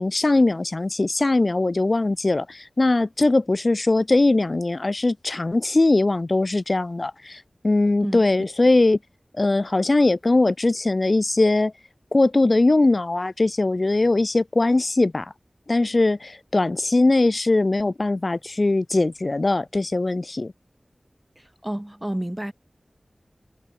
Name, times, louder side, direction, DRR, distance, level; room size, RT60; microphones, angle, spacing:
voice 1, 0.0-9.0 9.4-11.7 12.1-15.3 15.7-20.5, left 2 dB, 50° left, 1.7 m, -20 dB
voice 2, 21.4-22.5, right 1 dB, 15° right, 7.9 m, -30 dB
wide cardioid pair, 70°, 0 cm